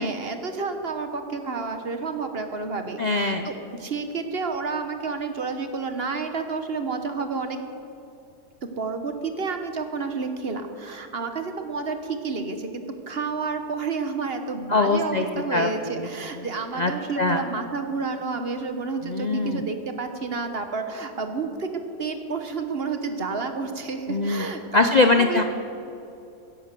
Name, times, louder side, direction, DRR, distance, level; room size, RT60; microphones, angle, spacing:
voice 1, 0.0-3.5 3.8-7.6 8.8-21.7 22.0-25.4, right 4 dB, 40° right, 6 dB, 1.2 m, -30 dB
voice 2, 3.0-3.5 14.7-15.2 15.5-15.7 16.0-16.1 16.8-16.9 17.2-17.4 19.1-19.6 24.1-24.5 24.7-25.4, left 3 dB, 75° left, 6 dB, 0.4 m, -22 dB
16.0 x 11.0 x 6.8 m, 2.7 s
omnidirectional pair, 1.7 m